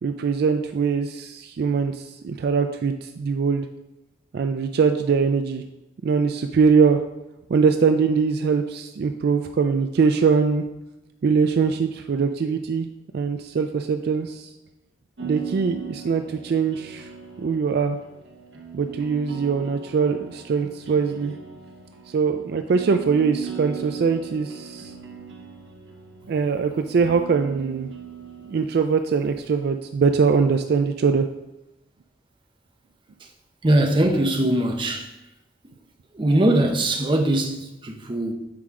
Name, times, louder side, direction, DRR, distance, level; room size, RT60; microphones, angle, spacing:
voice 1, 0.0-3.7 4.3-5.6 6.0-7.0 7.5-10.6 11.2-12.9 13.1-14.5 15.2-17.1 17.4-18.0 18.7-21.4 22.1-24.9 26.3-27.9 28.5-31.3, right 5 dB, 55° right, 0.3 m, -22 dB
sound 1, 15.2-28.8, right 7 dB, 75° right, 1.0 m, -40 dB
voice 2, 33.6-35.1 36.1-38.3, right 1 dB, 25° right, 0.7 m, -21 dB
7.5 x 4.8 x 3.6 m
head